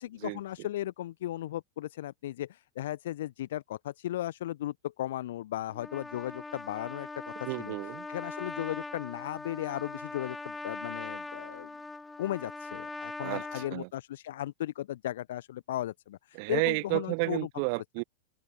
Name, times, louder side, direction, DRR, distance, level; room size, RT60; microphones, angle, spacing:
voice 1, 0.0-7.7 8.1-11.7 12.2-17.5, left 13 dB, 55° left, 1.0 m, -36 dB
Trumpet, 5.7-13.7, left 3 dB, 10° left, 0.4 m, -41 dB
voice 2, 7.4-8.1 13.2-13.9 16.3-18.0, right 36 dB, 45° right, 1.4 m, -32 dB
figure-of-eight pair, 90°, 0 cm